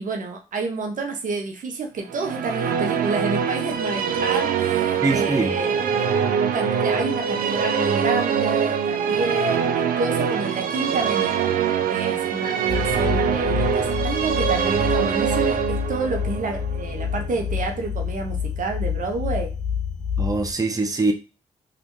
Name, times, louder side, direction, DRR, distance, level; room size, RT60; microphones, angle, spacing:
voice 1, 0.0-5.9 6.5-9.7 10.0-11.5 11.9-19.5, right 3 dB, 65° right, 0.8 m, -29 dB
Musical instrument, 2.1-17.5, right 7 dB, 80° right, 0.5 m, -24 dB
voice 2, 5.0-5.5 20.2-21.1, right 3 dB, 25° right, 0.7 m, -22 dB
sound 1, 12.7-20.5, left 7 dB, 65° left, 0.6 m, -28 dB
3.2 x 2.5 x 3.1 m
supercardioid pair, 45°, 15 cm